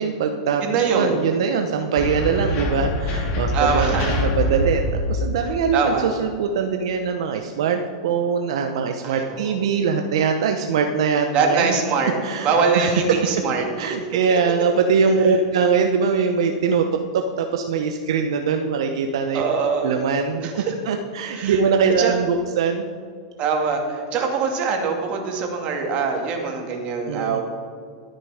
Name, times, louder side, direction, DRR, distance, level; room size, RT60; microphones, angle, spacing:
voice 1, 0.0-11.7 12.2-12.5 12.8-13.2 13.8-19.5 19.8-22.9 27.1-27.4, right 6 dB, 75° right, 5 dB, 0.8 m, -22 dB
voice 2, 0.6-1.2 3.5-4.1 5.4-6.1 9.0-9.6 11.3-12.1 12.4-13.7 19.3-19.9 20.4-20.7 21.3-21.6 22.0-22.2 23.4-27.4, right 5 dB, 40° right, 2 dB, 2.3 m, -23 dB
sound 1, 2.0-5.6, left 1 dB, 45° left, 2.5 m, -24 dB
12.5 x 8.7 x 5.0 m, 2.1 s
hypercardioid pair, 120°, 3 cm